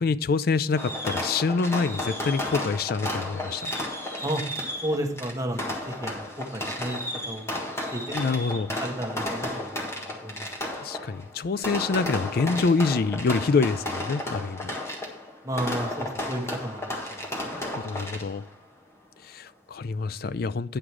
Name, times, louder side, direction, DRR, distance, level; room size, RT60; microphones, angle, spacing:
voice 1, 0.0-3.7 8.1-8.8 10.7-14.7 17.5-18.4 19.2-20.8, left 4 dB, 55° left, 16 dB, 0.4 m, -26 dB
Fireworks, 0.8-18.5, left 1 dB, 15° left, 1.6 m, -33 dB
voice 2, 4.8-7.0 7.3-7.4 7.9-8.2 8.8-10.5 15.4-17.6, right 1 dB, 20° right, 2 dB, 1.3 m, -32 dB
9.9 x 5.0 x 6.0 m, 0.64 s
head